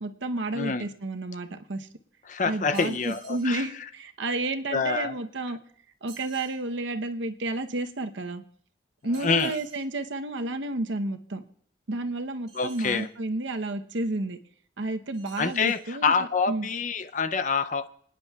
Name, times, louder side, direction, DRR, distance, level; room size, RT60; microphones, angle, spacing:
voice 1, 0.0-1.9 2.4-5.6 6.0-8.4 9.0-11.4 11.9-14.4 14.8-16.1 16.5-16.7, right 2 dB, 80° right, 0.9 m, -31 dB
voice 2, 0.5-0.9 2.3-3.6 4.7-5.2 9.2-9.6 12.5-13.1 15.4-17.9, left 5 dB, 40° left, 0.5 m, -26 dB
sound 1, 2.7-3.5 6.1-6.6 9.1-9.8 12.5-13.1 15.1-15.9, right 6 dB, 40° right, 2.9 m, -51 dB
26.0 x 9.8 x 2.3 m
head